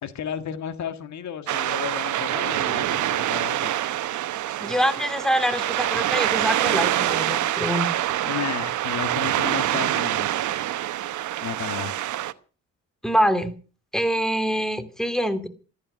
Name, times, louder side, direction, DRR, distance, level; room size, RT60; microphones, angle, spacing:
voice 1, 0.0-3.7 8.3-10.4 11.4-12.0, left 9 dB, 65° left, 10 dB, 1.8 m, -33 dB
sound 1, 1.5-12.3, right 13 dB, 75° right, 1.1 m, -25 dB
voice 2, 4.6-7.9 13.0-13.5 13.9-15.5, equal, ahead, 10 dB, 2.6 m, -24 dB
14.5 x 14.0 x 6.3 m, 0.37 s
cardioid pair, 90°, 30 cm